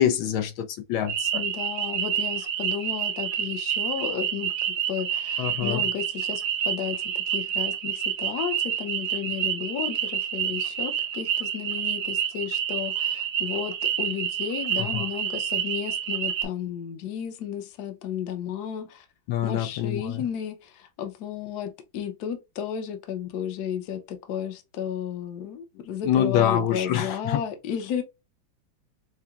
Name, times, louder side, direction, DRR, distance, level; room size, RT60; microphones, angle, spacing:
voice 1, 0.0-1.4 5.4-5.8 14.8-15.1 19.3-20.2 26.0-27.4, left 10 dB, 80° left, 1.4 m, -25 dB
sound 1, 1.1-16.4, right 9 dB, 90° right, 1.6 m, -28 dB
voice 2, 1.3-4.5 4.9-19.0 19.4-28.0, left 9 dB, 60° left, 1.2 m, -33 dB
5.7 x 2.1 x 2.3 m
omnidirectional pair, 2.2 m